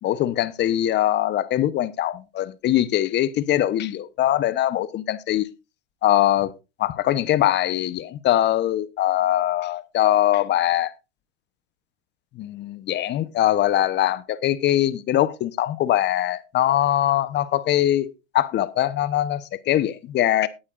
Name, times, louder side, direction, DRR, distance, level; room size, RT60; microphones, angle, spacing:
voice 1, 0.0-5.5 6.0-6.5 6.8-10.9 12.4-20.5, left 13 dB, 30° left, 0.9 m, -22 dB
19.0 x 8.6 x 2.5 m
hypercardioid pair, 110°, 36 cm